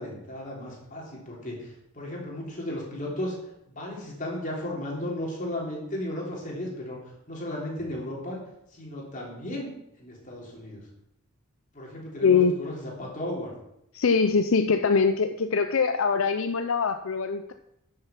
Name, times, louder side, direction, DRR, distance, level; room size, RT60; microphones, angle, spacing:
voice 1, 0.0-3.3 3.7-7.0 7.3-8.4 8.7-9.7 10.0-10.8 11.7-13.5, left 1 dB, 40° left, -3 dB, 3.4 m, -35 dB
voice 2, 12.2-12.6 13.9-17.5, left 5 dB, 75° left, 8 dB, 0.5 m, -23 dB
10.5 x 6.6 x 5.9 m, 0.80 s
head